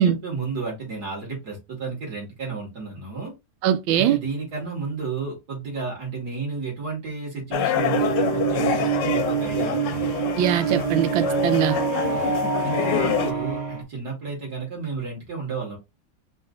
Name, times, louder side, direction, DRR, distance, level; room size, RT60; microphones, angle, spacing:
voice 1, 0.0-3.3 3.9-10.2 12.1-12.2 12.6-15.8, right 4 dB, 55° right, 2.6 m, -32 dB
voice 2, 3.6-4.2 10.4-11.7, right 10 dB, 85° right, 1.3 m, -21 dB
sound 1, 7.5-13.3, left 10 dB, 75° left, 1.3 m, -27 dB
sound 2, 7.8-13.8, right 6 dB, 35° right, 0.6 m, -25 dB
4.8 x 2.7 x 3.8 m
omnidirectional pair, 2.1 m